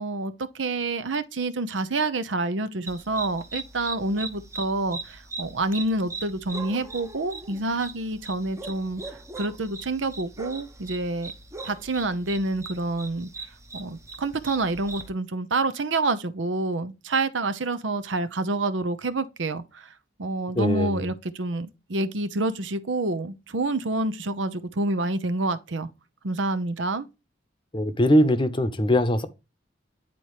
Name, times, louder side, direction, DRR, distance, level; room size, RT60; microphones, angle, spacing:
voice 1, 0.0-11.3 11.6-13.3 13.7-19.9 20.2-25.9 26.2-27.1, right 2 dB, 85° right, 0.8 m, -28 dB
sound 1, 2.9-15.1, right 3 dB, 15° right, 0.8 m, -40 dB
voice 2, 20.6-21.0 27.7-29.3, equal, 25° left, 0.8 m, -21 dB
9.9 x 4.3 x 3.1 m
head